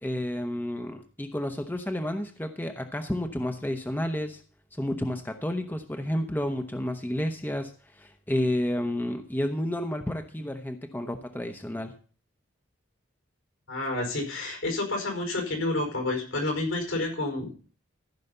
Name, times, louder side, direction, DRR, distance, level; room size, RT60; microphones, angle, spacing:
voice 1, 0.0-4.4 4.8-11.9, left 1 dB, 10° left, 6 dB, 0.8 m, -31 dB
voice 2, 13.7-17.5, left 2 dB, 80° left, 2 dB, 5.1 m, -29 dB
14.5 x 5.7 x 6.7 m, 0.40 s
head